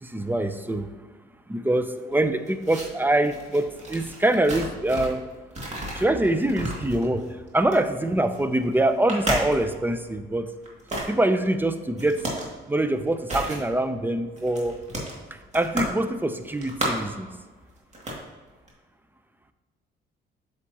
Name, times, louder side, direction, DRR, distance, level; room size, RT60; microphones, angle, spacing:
voice 1, 0.0-0.9 1.5-5.2 5.9-10.5 11.1-12.3 12.7-14.8 15.5-17.3, right 1 dB, 10° right, 9 dB, 0.6 m, -24 dB
sound 1, 2.1-5.2 5.5-9.9 10.6-11.1 12.0-12.5 12.8-13.7 13.9-14.0 14.4-16.0 16.3-17.2 17.8-18.2 18.5-18.7, right 1 dB, 35° right, 2.4 m, -33 dB
8.2 x 6.6 x 2.9 m, 1.4 s
cardioid pair, 90°, 20 cm